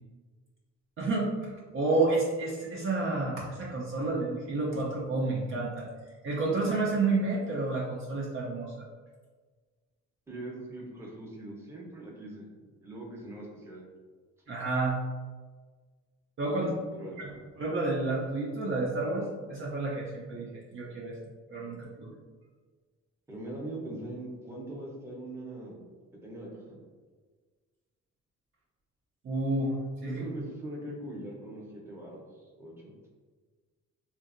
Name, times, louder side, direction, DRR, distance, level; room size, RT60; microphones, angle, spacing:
voice 1, 1.0-5.9 6.2-8.9 14.5-15.0 16.4-16.8 17.2-20.5 20.7-21.2 21.5-22.1 29.2-29.8 30.0-30.3, right 2 dB, 45° right, -4 dB, 0.5 m, -30 dB
voice 2, 10.3-12.4 12.8-13.8 16.9-17.1 23.3-25.8 26.2-26.5 30.0-32.2 32.6-32.9, right 1 dB, 10° right, -4 dB, 0.7 m, -41 dB
2.7 x 2.5 x 2.5 m, 1.4 s
cardioid pair, 90°, 30 cm